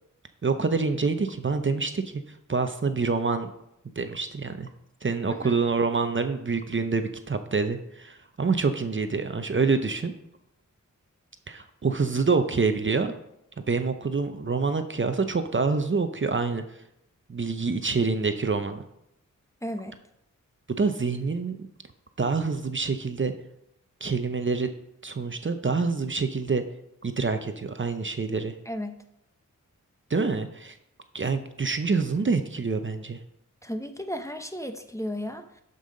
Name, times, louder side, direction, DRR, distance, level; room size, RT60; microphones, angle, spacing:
voice 1, 0.4-3.5 4.0-4.7 5.0-10.1 11.5-13.1 13.7-16.8 17.3-18.8 20.7-21.6 22.2-23.3 24.0-24.7 25.0-26.6 27.0-28.5 30.1-30.8 31.1-33.2, right 4 dB, 40° right, 8 dB, 0.7 m, -26 dB
voice 2, 19.6-20.0 28.7-28.9 33.6-35.6, equal, 10° left, 7 dB, 0.8 m, -34 dB
11.5 x 5.5 x 3.9 m, 0.79 s
cardioid pair, 50°, 32 cm